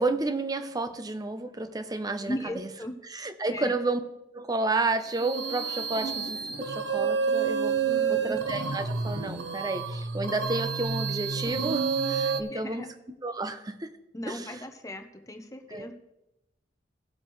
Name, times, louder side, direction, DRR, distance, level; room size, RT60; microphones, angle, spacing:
voice 1, 0.0-2.7 3.1-4.0 4.3-7.8 8.1-12.9 13.2-14.0 14.3-14.4 15.7-15.9, right 2 dB, 20° right, 10 dB, 0.7 m, -31 dB
voice 2, 2.2-2.9 3.5-3.8 7.8-8.4 12.5-12.9 14.1-15.9, left 1 dB, 20° left, 5 dB, 0.9 m, -37 dB
sound 1, 5.0-12.4, right 6 dB, 90° right, 0.8 m, -29 dB
16.5 x 7.3 x 3.2 m, 0.90 s
head